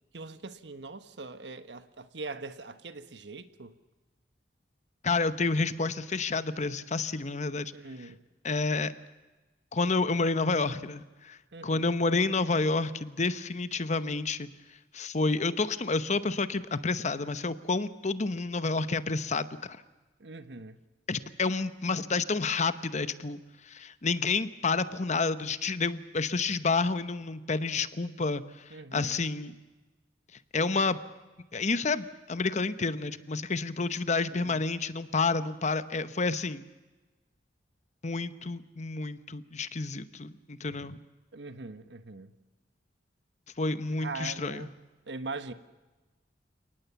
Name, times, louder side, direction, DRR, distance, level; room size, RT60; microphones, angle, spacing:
voice 1, 0.1-3.8 7.7-8.2 11.5-11.9 20.2-20.8 28.7-29.2 34.3-34.7 41.3-42.3 44.0-44.7 45.1-45.5, right 3 dB, 75° right, 1.3 m, -42 dB
voice 2, 5.0-7.7 8.4-8.9 9.7-11.4 11.6-14.5 14.9-19.8 21.1-23.4 23.7-28.4 28.9-29.5 30.5-31.0 31.5-36.6 38.0-41.0 43.6-44.7, left 3 dB, 40° left, 0.9 m, -29 dB
30.0 x 18.5 x 7.0 m
head